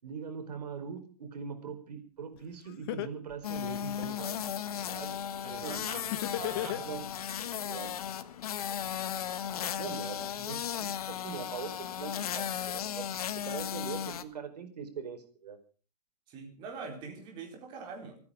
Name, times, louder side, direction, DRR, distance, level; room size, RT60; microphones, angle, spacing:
voice 1, 0.0-4.4 4.7-5.2 5.4-5.8 6.6-7.0 7.7-8.0 9.8-13.1 13.3-15.6, right 6 dB, 85° right, 6 dB, 4.7 m, -42 dB
Laughter, 2.4-2.5 2.9-4.3 6.1-7.3, left 13 dB, 35° left, 1.0 m, -34 dB
sound 1, 3.4-14.2, left 9 dB, 65° left, 1.4 m, -36 dB
voice 2, 5.4-6.9 16.3-18.2, right 5 dB, 25° right, 2 dB, 4.2 m, -44 dB
27.5 x 9.7 x 4.9 m, 0.38 s
hypercardioid pair, 170°, 20 cm